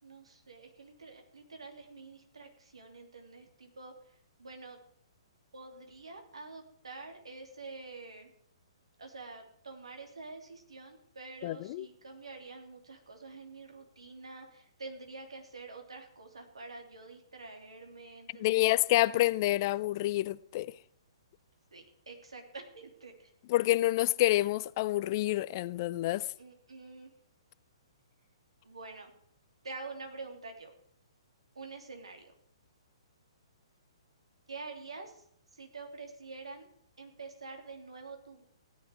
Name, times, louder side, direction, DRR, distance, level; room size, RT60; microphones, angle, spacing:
voice 1, 0.0-4.8 5.5-8.3 9.0-18.7 21.7-23.3 26.4-27.1 28.6-29.1 29.6-30.7 31.5-32.3 34.5-35.2 35.5-36.7 37.0-38.4, right 3 dB, 80° right, 3.4 m, -47 dB
voice 2, 11.4-11.9 18.4-20.7 23.5-26.2, left 17 dB, 40° left, 0.5 m, -28 dB
16.5 x 10.5 x 4.9 m
figure-of-eight pair, 125°, 3 cm